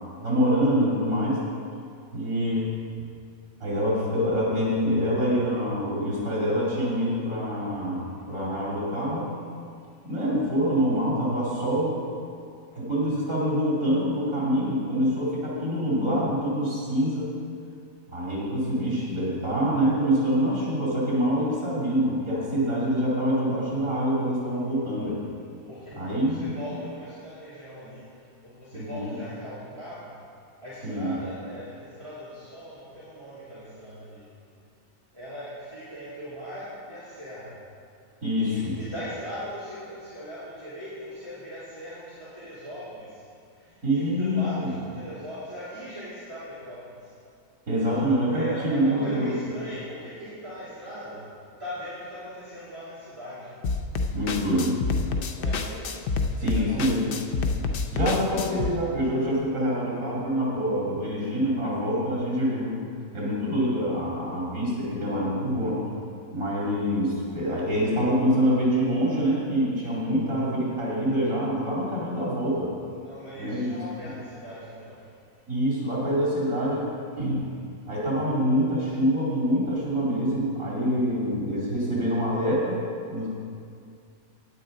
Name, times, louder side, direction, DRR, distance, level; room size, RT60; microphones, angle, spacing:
voice 1, 0.2-1.5 2.1-2.7 3.6-9.3 10.0-12.0 12.7-17.3 18.1-25.2 26.0-26.6 28.7-29.1 30.8-31.1 38.2-38.8 43.8-44.7 47.7-49.5 54.1-54.9 56.4-57.2 57.9-62.8 63.1-65.9 66.3-72.7 73.3-73.8 75.5-77.5 77.9-82.8 83.1-83.3, equal, 85° right, -6 dB, 3.2 m, -25 dB
voice 2, 25.7-28.1 28.4-30.1 30.6-34.3 35.1-37.6 38.5-43.2 43.5-47.1 47.7-51.2 51.6-53.5 55.3-56.0 56.3-57.2 72.9-75.1, equal, 25° right, -13 dB, 2.8 m, -40 dB
sound 1, 53.6-58.7, left 4 dB, 55° left, 0.7 m, -28 dB
16.0 x 9.7 x 3.8 m, 2.4 s
omnidirectional pair, 1.4 m